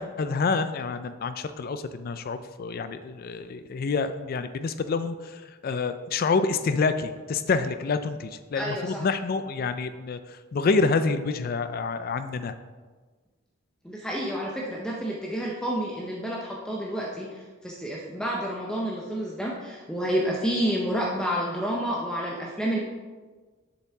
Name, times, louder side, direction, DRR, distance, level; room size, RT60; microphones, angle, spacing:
voice 1, 0.0-12.5, left 4 dB, 45° left, 11 dB, 0.3 m, -27 dB
voice 2, 8.5-9.1 13.8-22.8, equal, 5° left, -3 dB, 0.7 m, -29 dB
7.1 x 6.9 x 3.5 m, 1.4 s
head